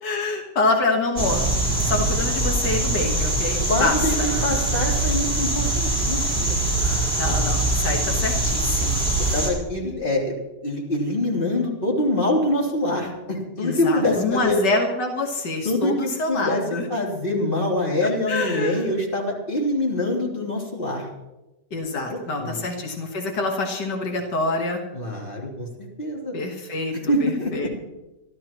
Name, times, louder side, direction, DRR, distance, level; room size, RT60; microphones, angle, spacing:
voice 1, 0.0-1.5 1.8-4.3 7.2-9.0 13.6-16.9 18.0-18.9 21.7-24.8 26.3-27.7, left 3 dB, 85° left, 2 dB, 2.1 m, -26 dB
sound 1, 1.2-9.5, right 2 dB, 30° right, 4.3 m, -23 dB
voice 2, 3.7-6.6 9.3-10.4 10.6-14.6 15.7-16.6 16.9-21.1 22.1-22.6 24.9-26.3 26.9-27.7, left 1 dB, 30° left, -3 dB, 3.5 m, -25 dB
26.0 x 12.5 x 3.0 m, 1.1 s
omnidirectional pair, 1.8 m